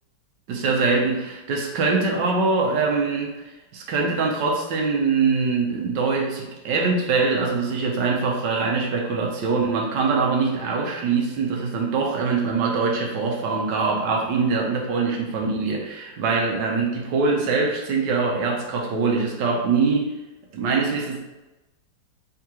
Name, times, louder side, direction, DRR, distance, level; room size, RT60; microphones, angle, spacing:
voice 1, 0.5-3.4 3.7-20.1 20.5-21.2, right 4 dB, 70° right, 0 dB, 1.4 m, -23 dB
3.7 x 3.6 x 2.9 m, 1.1 s
omnidirectional pair, 2.1 m